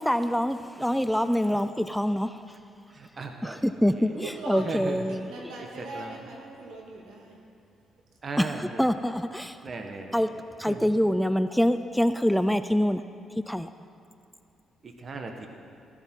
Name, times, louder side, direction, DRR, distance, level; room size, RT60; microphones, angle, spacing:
voice 1, 0.0-2.4 3.4-4.1 4.5-5.3 8.4-9.6 10.1-10.3 10.6-13.0 13.5-13.7, equal, ahead, 0.4 m, -25 dB
voice 2, 2.9-3.6 4.0-4.1 4.7-5.0 5.8-6.2 8.2-8.9 9.6-10.2 10.7-10.8 14.8-15.5, right 3 dB, 40° right, 1.4 m, -37 dB
voice 3, 4.1-7.4, right 2 dB, 80° right, 2.4 m, -39 dB
15.0 x 14.5 x 4.6 m
cardioid pair, 90°, 0 cm